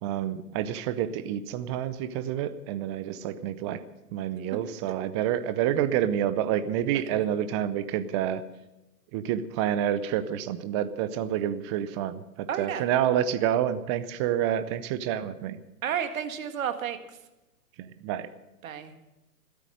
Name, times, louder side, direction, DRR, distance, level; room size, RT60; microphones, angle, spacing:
voice 1, 0.0-3.8 4.1-8.4 9.1-15.6 17.8-18.3, right 10 dB, 20° right, 14 dB, 0.5 m, -28 dB
voice 2, 12.5-12.8 15.8-17.2 18.6-18.9, right 8 dB, 55° right, 8 dB, 1.9 m, -32 dB
15.0 x 13.0 x 6.4 m, 0.98 s
hypercardioid pair, 125°, 47 cm